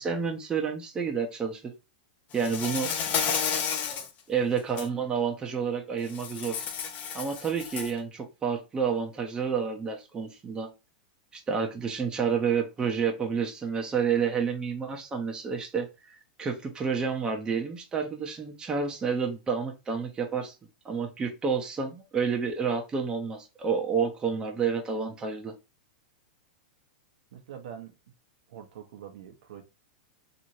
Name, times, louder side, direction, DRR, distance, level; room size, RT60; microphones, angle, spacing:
voice 1, 0.0-1.6 2.3-2.9 4.3-6.6 7.1-10.7 11.3-20.5 20.8-25.5, right 6 dB, 15° right, 0.7 m, -29 dB
Insect, 2.4-4.1 4.6-4.9 6.1-8.0, left 7 dB, 35° left, 0.6 m, -31 dB
voice 2, 27.3-27.9 28.5-29.6, right 9 dB, 70° right, 0.7 m, -44 dB
3.0 x 2.7 x 2.6 m
hypercardioid pair, 125°, 5 cm